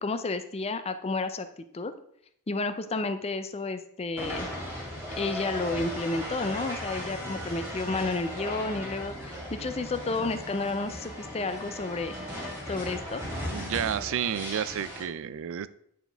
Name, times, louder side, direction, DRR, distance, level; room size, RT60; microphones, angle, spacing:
voice 1, 0.0-1.5 1.7-1.9 2.5-4.5 5.2-12.1 12.7-13.2, left 3 dB, 30° left, 10 dB, 0.5 m, -31 dB
sound 1, 4.2-15.0, equal, 10° right, 2.1 m, -37 dB
voice 2, 13.5-15.7, right 8 dB, 65° right, 15 dB, 0.4 m, -31 dB
9.3 x 4.3 x 3.4 m, 0.70 s
head